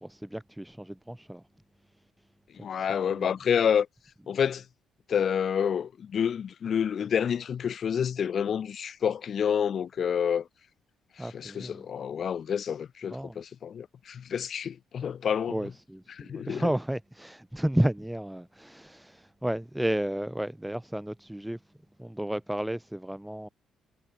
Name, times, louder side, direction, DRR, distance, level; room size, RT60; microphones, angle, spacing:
voice 1, 0.0-1.4 2.8-3.3 11.2-11.9 13.1-13.4 15.5-21.6 22.0-23.5, right 1 dB, 5° right, 0.5 m, -32 dB
voice 2, 2.6-3.9 4.3-4.6 5.1-10.5 11.3-15.6 16.1-16.6, left 8 dB, 50° left, 0.6 m, -28 dB
cardioid pair, 100°, 0 cm